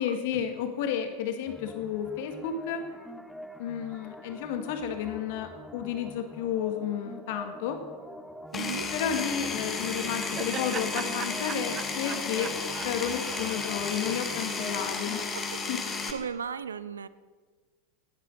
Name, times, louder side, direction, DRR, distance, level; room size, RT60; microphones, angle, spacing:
voice 1, 0.0-2.8 3.6-7.8 8.9-12.5 12.8-15.2 15.7-15.8, left 8 dB, 55° left, 6 dB, 1.8 m, -32 dB
sound 1, 1.5-15.2, equal, ahead, 1.1 m, -46 dB
Power tool, 8.5-16.1, left 4 dB, 25° left, 2.2 m, -33 dB
voice 2, 8.5-8.9 15.2-15.5 15.9-17.1, right 6 dB, 80° right, 16 dB, 0.6 m, -36 dB
Laughter, 9.7-14.9, right 9 dB, 35° right, 0.6 m, -41 dB
17.5 x 10.0 x 6.3 m, 1.5 s
figure-of-eight pair, 90°, 0 cm